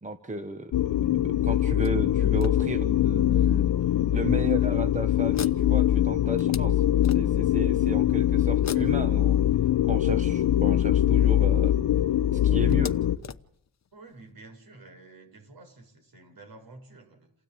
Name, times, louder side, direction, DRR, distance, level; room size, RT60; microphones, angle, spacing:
voice 1, 0.0-1.0 1.2-3.7 4.1-9.4 9.8-11.7 12.3-12.9, right 2 dB, 20° right, 9 dB, 1.3 m, -34 dB
sound 1, 0.7-13.2, left 12 dB, 80° left, 1.2 m, -23 dB
sound 2, 1.8-3.2 3.9-4.0 4.4-4.6 5.3-7.6 8.6-10.3 11.4-11.5 11.8-11.9 12.7-14.3, left 7 dB, 40° left, 1.0 m, -42 dB
voice 2, 13.9-17.3, right 3 dB, 55° right, 5 dB, 7.7 m, -50 dB
28.5 x 16.5 x 9.2 m, 0.74 s
wide cardioid pair, 130°, 41 cm